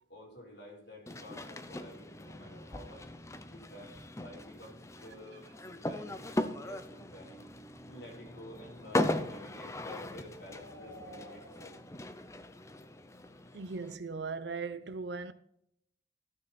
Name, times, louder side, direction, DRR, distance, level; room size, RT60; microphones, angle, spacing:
voice 1, 0.1-3.0 3.5-7.4 7.9-11.8, left 1 dB, 65° left, 4.1 m, -51 dB
sound 1, 1.1-14.0, left 1 dB, 15° left, 0.6 m, -39 dB
sound 2, 7.8-13.6, left 1 dB, 80° left, 1.8 m, -56 dB
voice 2, 13.5-15.3, right 4 dB, 70° right, 0.7 m, -38 dB
15.0 x 6.5 x 4.3 m
head